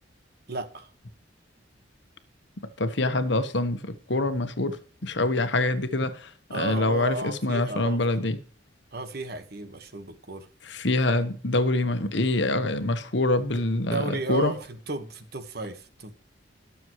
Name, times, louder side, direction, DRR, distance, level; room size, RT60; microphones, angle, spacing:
voice 1, 0.5-0.9 6.5-8.2 8.9-10.5 13.9-16.1, right 3 dB, 55° right, 1.5 m, -34 dB
voice 2, 2.8-4.8 5.0-8.4 10.7-14.5, left 2 dB, 60° left, 1.3 m, -25 dB
20.0 x 7.1 x 3.1 m
head